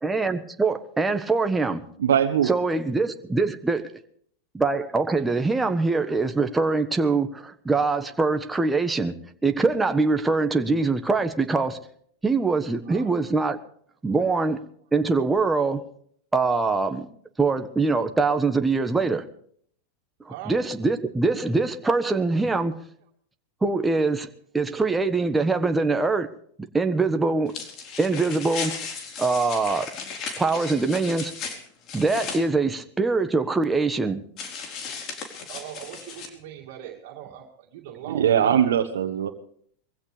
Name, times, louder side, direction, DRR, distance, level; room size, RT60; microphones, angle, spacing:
voice 1, 0.0-1.8 2.4-3.8 4.5-9.1 9.4-11.8 12.2-13.6 14.0-14.6 14.9-15.8 16.3-17.1 17.4-19.2 20.2-22.7 23.6-24.3 24.5-26.3 26.6-27.5 28.0-28.7 29.2-29.9 30.4-31.3 31.9-34.2, right 3 dB, 10° right, 1.4 m, -23 dB
voice 2, 2.0-2.5 38.1-39.3, right 9 dB, 80° right, 1.3 m, -21 dB
voice 3, 20.3-20.6 22.7-22.8 35.5-38.6, right 10 dB, 60° right, 2.5 m, -40 dB
sound 1, 27.5-32.4 34.4-36.3, left 5 dB, 45° left, 4.2 m, -36 dB
22.5 x 16.0 x 3.4 m
hypercardioid pair, 105°, 0 cm